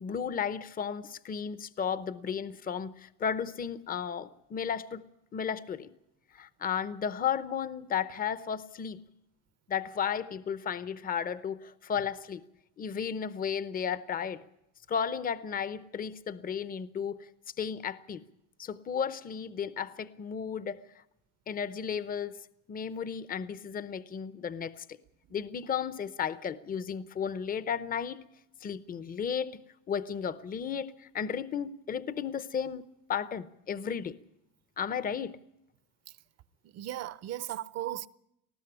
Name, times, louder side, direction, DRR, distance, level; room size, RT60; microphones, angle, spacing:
voice 1, 0.0-5.0 5.3-5.9 6.3-9.0 9.7-12.4 12.8-14.4 14.9-17.2 17.6-18.2 18.6-20.8 21.5-22.4 22.7-24.8 25.3-28.2 28.6-29.6 29.9-32.8 33.1-34.2 34.8-35.4, left 7 dB, 25° left, 0.8 m, -34 dB
voice 2, 36.6-38.1, right 13 dB, 45° right, 0.8 m, -36 dB
20.0 x 14.0 x 9.8 m
cardioid pair, 140°, 35 cm